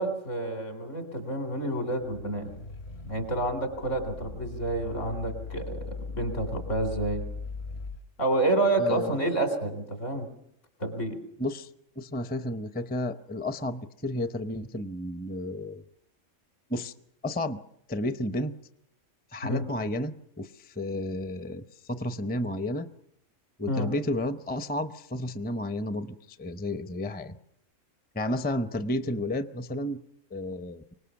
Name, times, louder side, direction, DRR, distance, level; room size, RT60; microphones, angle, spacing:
voice 1, 0.0-2.5 3.0-5.8 6.1-7.2 8.2-10.3 10.8-11.2 19.4-19.6 23.7-23.9, right 2 dB, 75° left, 6 dB, 4.1 m, -29 dB
sound 1, 2.0-8.0, left 3 dB, 55° left, 1.4 m, -39 dB
voice 2, 8.8-9.2 11.4-11.7 12.0-15.8 16.7-16.9 17.2-17.6 17.9-18.6 19.3-22.9 23.6-27.4 28.1-30.0 30.3-30.9, left 1 dB, 10° left, 11 dB, 0.5 m, -32 dB
25.0 x 19.0 x 7.0 m, 0.75 s
omnidirectional pair, 1.3 m